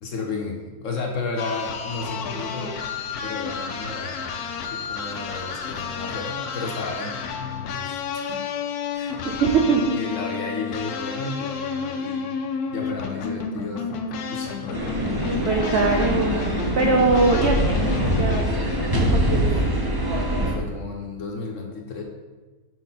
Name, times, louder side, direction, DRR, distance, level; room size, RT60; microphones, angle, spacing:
voice 1, 0.0-2.8 3.2-4.3 4.6-7.2 7.6-8.4 8.9-9.2 9.7-12.4 12.7-15.0 19.4-19.5 20.4-22.0, left 3 dB, 55° left, 1 dB, 1.0 m, -33 dB
sound 1, 1.4-18.4, left 5 dB, 75° left, 1.1 m, -31 dB
voice 2, 9.2-10.0 15.3-18.4 19.1-19.6, right 4 dB, 70° right, 1 dB, 0.6 m, -22 dB
sound 2, 14.7-20.5, equal, 20° right, 0.7 m, -23 dB
5.9 x 4.7 x 4.1 m, 1.3 s
omnidirectional pair, 1.8 m